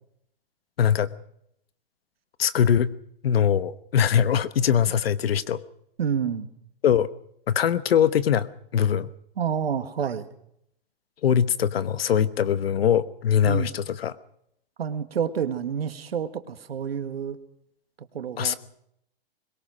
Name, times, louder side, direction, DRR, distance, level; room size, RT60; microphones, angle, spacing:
voice 1, 0.8-1.1 2.4-2.9 3.2-5.6 6.8-7.1 7.5-9.1 11.2-14.1 18.4-18.6, left 8 dB, 80° left, 15 dB, 1.1 m, -22 dB
voice 2, 6.0-6.5 9.4-10.3 13.4-13.7 14.8-17.4 18.1-18.6, right 7 dB, 90° right, 9 dB, 1.9 m, -28 dB
22.0 x 20.0 x 6.2 m, 0.74 s
hypercardioid pair, 135°, 29 cm